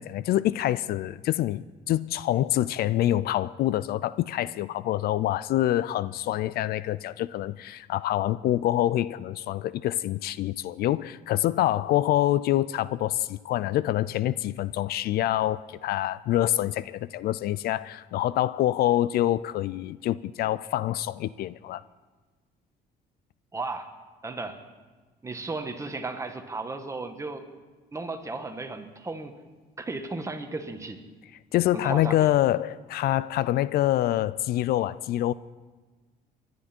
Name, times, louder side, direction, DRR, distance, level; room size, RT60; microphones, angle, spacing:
voice 1, 0.0-21.8 31.5-35.3, left 13 dB, 65° left, 18 dB, 0.4 m, -26 dB
voice 2, 23.5-23.9 24.2-24.6 25.2-27.5 27.9-29.4 29.8-31.0 31.7-32.3, right 3 dB, 15° right, 6 dB, 1.4 m, -35 dB
23.5 x 11.0 x 4.4 m, 1.3 s
cardioid pair, 110°, 17 cm